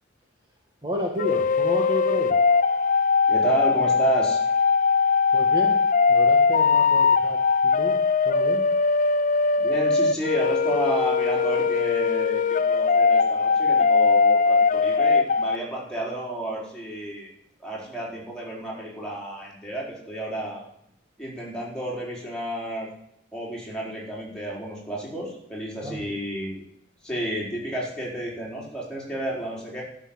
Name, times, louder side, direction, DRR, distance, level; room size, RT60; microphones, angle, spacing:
voice 1, 0.8-2.4 5.3-5.8 6.1-7.4 7.6-8.7 25.8-26.0, left 1 dB, 25° right, -1 dB, 1.7 m, -31 dB
sound 1, 1.2-15.6, left 5 dB, 40° left, 0.5 m, -20 dB
voice 2, 3.3-4.4 9.6-17.3 17.6-20.6 21.2-22.9 23.3-26.7 27.0-29.8, right 1 dB, 5° left, -5 dB, 4.4 m, -31 dB
12.5 x 6.5 x 8.9 m, 0.73 s
head